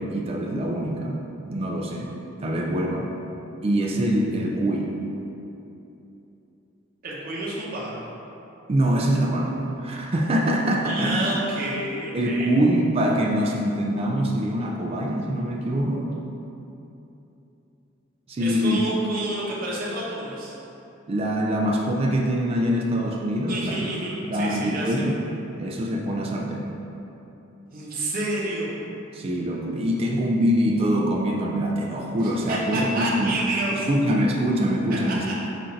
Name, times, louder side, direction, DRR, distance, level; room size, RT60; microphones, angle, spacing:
voice 1, 0.0-2.1 2.4-3.1 3.6-5.0 8.7-11.4 12.1-16.1 18.3-18.8 21.1-23.9 24.3-26.7 29.1-33.3 33.7-35.3, equal, 30° right, 0 dB, 0.3 m, -24 dB
voice 2, 7.0-8.0 10.8-12.6 18.4-20.5 23.5-25.1 27.7-28.7 32.2-33.9 35.2-35.3, right 2 dB, 45° right, -6 dB, 0.8 m, -29 dB
3.9 x 2.5 x 4.3 m, 2.9 s
head